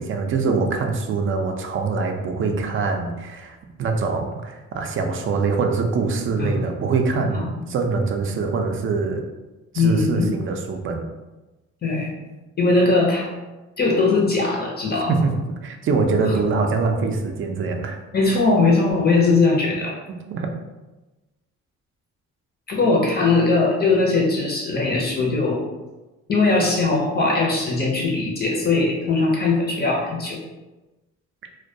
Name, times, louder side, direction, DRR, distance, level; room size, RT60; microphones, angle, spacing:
voice 1, 0.0-9.2 9.7-11.0 15.1-18.0 20.3-20.5, right 4 dB, 45° right, 4 dB, 0.4 m, -24 dB
voice 2, 7.3-7.6 9.7-10.3 11.8-12.1 12.6-13.3 13.8-15.2 16.2-16.4 18.1-20.0 22.7-25.6 26.3-30.4, left 3 dB, 35° left, -2 dB, 0.5 m, -20 dB
2.2 x 2.2 x 2.6 m, 1.1 s
cardioid pair, 90°, 30 cm